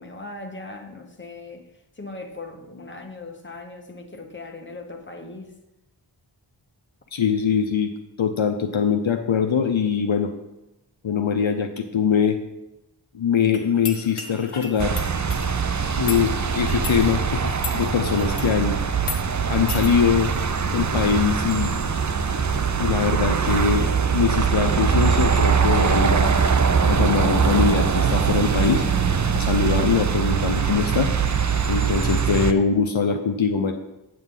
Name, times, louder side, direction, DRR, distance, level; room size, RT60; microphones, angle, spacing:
voice 1, 0.0-1.7 2.0-5.5, left 2 dB, 25° left, 3 dB, 1.2 m, -39 dB
voice 2, 7.1-7.9 8.2-10.3 11.0-12.4 13.1-15.0 16.0-18.8 19.5-20.3 20.7-21.8 22.8-23.9 24.1-26.4 26.8-28.8 29.3-31.1 31.7-33.7, left 6 dB, 70° left, 6 dB, 0.7 m, -22 dB
sound 1, 13.5-18.6 19.0-19.2 19.7-19.9, left 5 dB, 90° left, 1.0 m, -36 dB
sound 2, 14.8-32.5, right 6 dB, 35° right, 0.5 m, -22 dB
8.1 x 7.8 x 3.8 m, 0.92 s
wide cardioid pair, 50°, 49 cm